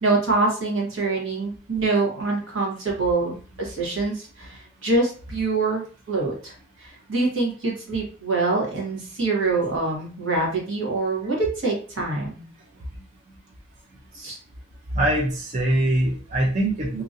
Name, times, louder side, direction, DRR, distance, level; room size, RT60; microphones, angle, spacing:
voice 1, 0.0-5.8 6.1-12.4 14.1-14.4, right 3 dB, 75° right, -2 dB, 1.2 m, -25 dB
voice 2, 14.9-17.0, right 1 dB, 40° right, -2 dB, 0.5 m, -22 dB
2.8 x 2.5 x 2.6 m, 0.40 s
head